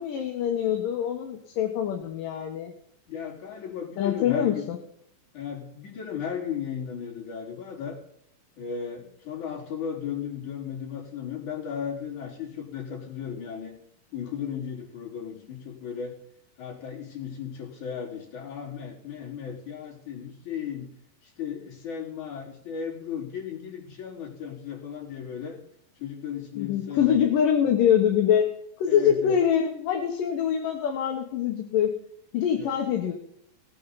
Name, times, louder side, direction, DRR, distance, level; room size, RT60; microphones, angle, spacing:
voice 1, 0.0-2.7 4.0-4.8 26.6-28.5 28.8-32.0 32.3-33.1, left 9 dB, 65° left, 2 dB, 2.7 m, -24 dB
voice 2, 3.1-4.7 5.3-8.0 8.6-13.7 14.1-16.2 16.6-20.9 21.2-25.6 26.0-27.2 28.9-29.4 32.6-32.8, left 7 dB, 50° left, -4 dB, 5.3 m, -35 dB
19.0 x 9.3 x 4.1 m, 0.70 s
omnidirectional pair, 4.5 m